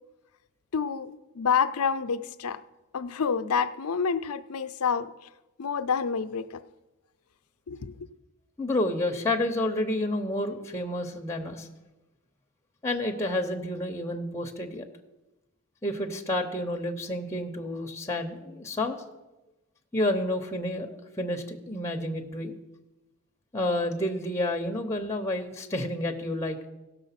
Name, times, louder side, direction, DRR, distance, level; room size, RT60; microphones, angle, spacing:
voice 1, 0.7-2.6 2.9-5.1 5.6-6.6 7.7-8.1, left 6 dB, 75° left, 12 dB, 0.6 m, -28 dB
voice 2, 8.6-11.7 12.8-14.9 15.8-19.0 19.9-22.5 23.5-26.6, left 1 dB, 15° left, 4 dB, 0.8 m, -30 dB
16.0 x 6.3 x 5.8 m, 1.1 s
head